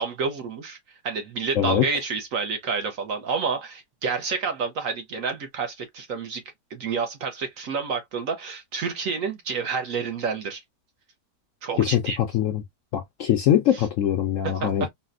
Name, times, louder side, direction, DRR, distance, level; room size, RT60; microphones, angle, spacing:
voice 1, 0.0-6.4 6.7-10.6 11.6-12.2 13.7-13.8 14.6-14.7, right 5 dB, 65° right, 0.9 m, -29 dB
voice 2, 1.5-1.9 11.8-12.6 12.9-14.9, left 11 dB, 70° left, 0.8 m, -22 dB
4.0 x 2.1 x 2.4 m
omnidirectional pair, 1.8 m